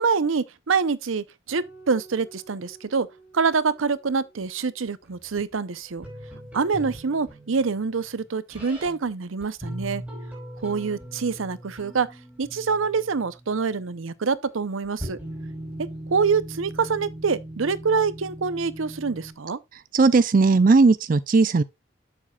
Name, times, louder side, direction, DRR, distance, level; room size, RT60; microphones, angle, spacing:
voice 1, 0.0-3.1 3.3-6.1 6.5-10.0 10.6-12.1 12.4-15.2 15.8-19.6, right 5 dB, 85° right, 0.7 m, -26 dB
sound 1, 1.5-4.1 5.0-9.1 9.4-13.9 14.4-14.5 14.8-19.3, right 1 dB, 10° right, 5.0 m, -40 dB
voice 2, 19.9-21.6, right 3 dB, 45° right, 0.4 m, -17 dB
10.0 x 7.4 x 2.3 m
head